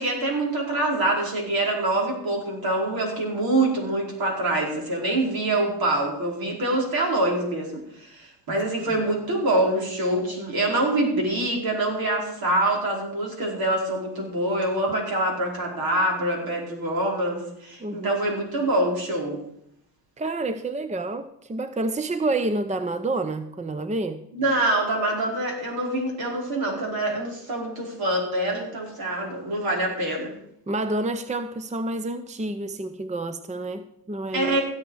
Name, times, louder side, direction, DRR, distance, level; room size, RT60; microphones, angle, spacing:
voice 1, 0.0-19.4 24.3-30.3 34.3-34.6, right 1 dB, 65° right, 4.6 m, -25 dB
voice 2, 17.8-18.1 20.2-24.2 30.7-34.6, right 2 dB, 20° right, 0.8 m, -29 dB
16.5 x 7.3 x 4.8 m
supercardioid pair, 60°, 39 cm